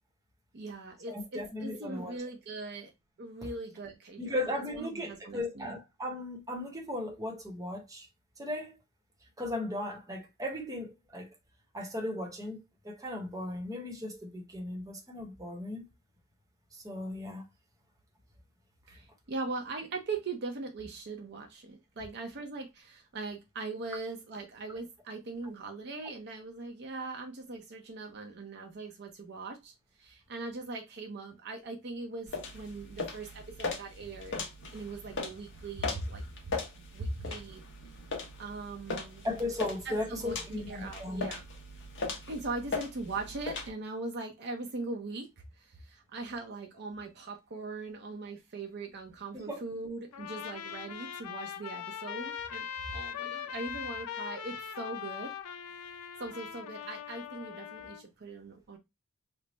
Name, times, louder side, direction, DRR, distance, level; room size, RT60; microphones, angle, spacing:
voice 1, 0.5-2.9 3.2-4.4 4.7-5.8 18.9-34.4 34.7-36.6 36.9-37.6 38.4-39.2 39.8-41.4 42.3-55.3 56.2-58.8, right 3 dB, 50° right, 0.5 m, -40 dB
voice 2, 1.1-2.2 4.2-8.1 8.4-8.8 9.4-11.3 11.7-12.6 12.8-15.8 16.8-17.4 39.2-41.3 49.4-49.6, left 1 dB, 15° right, 0.8 m, -36 dB
sound 1, 32.3-43.7, left 3 dB, 55° left, 0.8 m, -39 dB
Trumpet, 50.1-58.0, left 8 dB, 90° left, 0.4 m, -41 dB
3.3 x 2.0 x 3.8 m
head